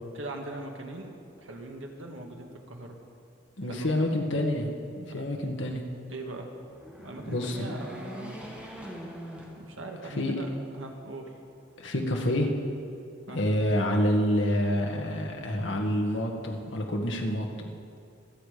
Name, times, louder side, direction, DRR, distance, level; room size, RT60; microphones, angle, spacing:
voice 1, 0.1-1.1 1.4-2.9 3.7-4.3 6.1-6.5 7.0-8.4 9.6-11.3 13.3-13.4, right 2 dB, 75° right, 2 dB, 1.7 m, -40 dB
voice 2, 3.6-4.7 4.9-5.8 7.3-7.8 10.2-10.3 11.8-12.5 13.3-17.5, left 1 dB, 65° left, 2 dB, 1.7 m, -27 dB
sound 1, 6.6-10.2 10.7-10.8 11.9-12.6, equal, 5° right, 1.6 m, -43 dB
25.0 x 8.5 x 5.1 m, 2.4 s
head